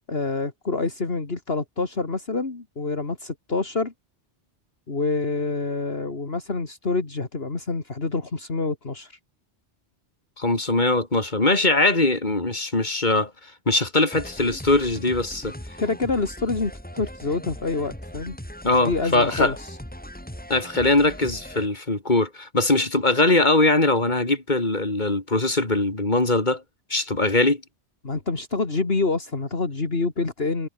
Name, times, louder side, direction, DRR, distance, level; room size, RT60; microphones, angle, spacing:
voice 1, 0.1-3.9 4.9-9.2 15.8-18.4 18.7-19.8 28.0-30.7, left 3 dB, 55° left, 2.8 m, -27 dB
voice 2, 10.4-13.3 13.7-15.6 18.6-19.6 20.5-26.6 26.9-27.6, left 2 dB, 40° left, 3.7 m, -21 dB
sound 1, 14.1-21.7, equal, 5° left, 3.6 m, -39 dB
omnidirectional pair, 1.2 m